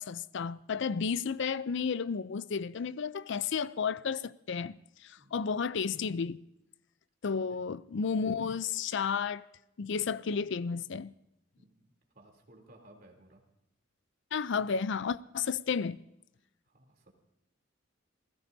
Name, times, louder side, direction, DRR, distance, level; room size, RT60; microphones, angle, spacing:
voice 1, 0.0-4.8 5.0-6.4 7.2-9.4 9.8-11.1 14.3-16.0, left 6 dB, 65° left, 0.5 m, -32 dB
voice 2, 11.6-13.4 16.7-17.1, right 1 dB, 50° right, 3.2 m, -59 dB
29.0 x 16.0 x 2.7 m
head